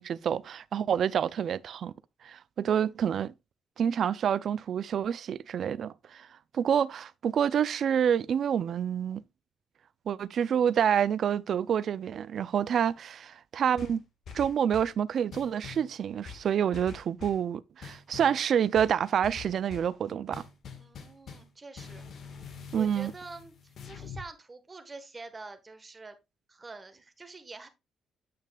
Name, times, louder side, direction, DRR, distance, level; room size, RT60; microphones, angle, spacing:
voice 1, 0.0-1.9 2.2-3.3 3.8-6.3 6.5-9.2 10.1-14.0 14.3-20.5 22.7-23.1, right 8 dB, 60° right, 0.3 m, -28 dB
voice 2, 2.6-3.0 20.8-22.0 22.7-26.2 26.5-27.7, right 3 dB, 25° right, 1.3 m, -46 dB
sound 1, 13.8-15.0 15.3-15.9 16.2-17.5 17.8-18.4 18.7-19.9 20.3-21.5 21.8-24.3, left 6 dB, 65° left, 1.5 m, -45 dB
8.6 x 6.3 x 2.3 m
cardioid pair, 90°, 0 cm